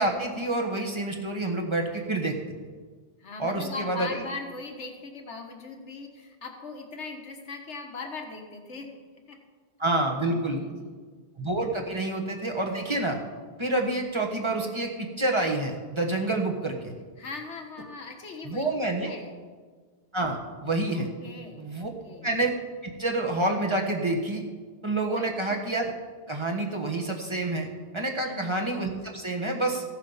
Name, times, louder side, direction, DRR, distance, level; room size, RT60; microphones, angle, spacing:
voice 1, 0.0-2.4 3.4-4.1 9.8-10.6 11.4-13.2 13.6-16.9 18.4-19.1 20.1-21.1 21.6-21.9 22.2-22.6 22.8-24.4 24.8-25.9 26.3-27.7 27.9-29.8, right 2 dB, 25° right, 1 dB, 1.4 m, -28 dB
voice 2, 3.2-9.0 9.3-9.4 10.3-11.0 17.2-18.6 18.9-19.4 20.9-22.3 25.5-25.6 28.2-28.5, left 3 dB, 80° left, 3 dB, 1.8 m, -40 dB
15.0 x 7.5 x 5.6 m, 1.5 s
omnidirectional pair, 1.2 m